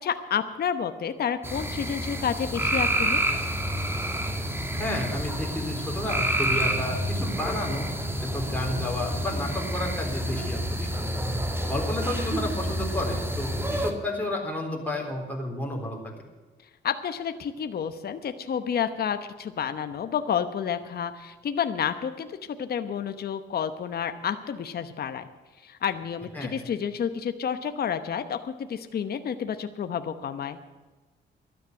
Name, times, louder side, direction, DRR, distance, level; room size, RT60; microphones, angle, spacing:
voice 1, 0.0-3.2 16.8-25.3 25.6-30.6, left 8 dB, 50° left, 9 dB, 1.0 m, -30 dB
sound 1, 1.4-13.9, right 1 dB, 10° right, 2.0 m, -29 dB
voice 2, 4.8-7.9 8.2-10.9 11.6-16.2 26.3-26.7, left 1 dB, 10° left, -1 dB, 3.7 m, -31 dB
12.5 x 10.5 x 7.9 m, 1.3 s
cardioid pair, 90°, 20 cm